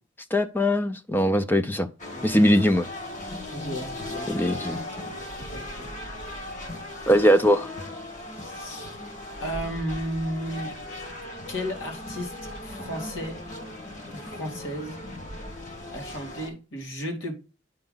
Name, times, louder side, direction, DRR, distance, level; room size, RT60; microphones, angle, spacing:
voice 1, 0.3-1.9 2.2-2.9 4.3-4.8 7.1-7.7, equal, 10° left, 0.5 m, -21 dB
sound 1, 2.0-16.5, left 1 dB, 40° left, 1.6 m, -37 dB
voice 2, 3.5-4.7 5.4-5.9 8.3-8.9 9.4-10.7 11.5-12.3 12.6-13.4 14.1-15.0 15.9-17.3, equal, 80° left, 2.3 m, -34 dB
8.7 x 5.0 x 3.8 m
head